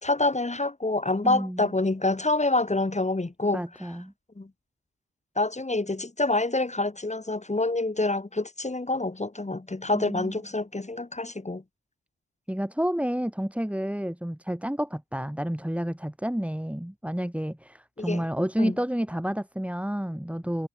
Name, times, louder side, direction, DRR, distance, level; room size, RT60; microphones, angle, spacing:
voice 1, 0.0-3.6 4.4-4.5 5.4-11.6 18.0-18.3 18.6-18.8, left 2 dB, 20° left, 2.1 m, -27 dB
voice 2, 1.2-1.7 3.5-4.1 9.9-10.4 12.5-20.7, equal, 5° right, 3.7 m, -30 dB
wide cardioid pair, 100°, 37 cm